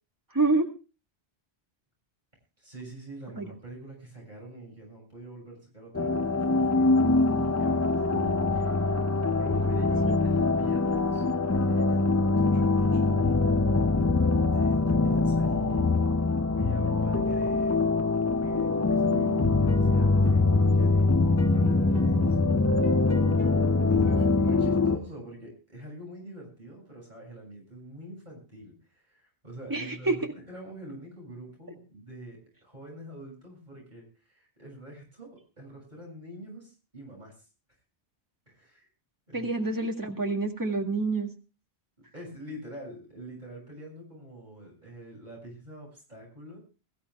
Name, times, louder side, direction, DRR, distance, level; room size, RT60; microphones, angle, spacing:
voice 1, 0.3-0.7 3.4-3.5 10.0-10.2 24.6-24.7 29.7-30.3 39.3-41.3, right 3 dB, 20° right, 2 dB, 2.0 m, -27 dB
voice 2, 2.6-8.1 8.5-11.3 11.5-13.5 14.5-15.9 16.5-17.8 18.3-22.4 23.9-37.3 38.5-38.9 39.3-39.5 42.1-46.6, right 1 dB, 45° right, -1 dB, 6.8 m, -45 dB
sound 1, 5.9-25.0, left 3 dB, 20° left, 0.5 m, -23 dB
sound 2, 19.1-24.4, left 2 dB, 60° left, 2.8 m, -41 dB
22.5 x 14.5 x 2.3 m, 0.32 s
omnidirectional pair, 1.1 m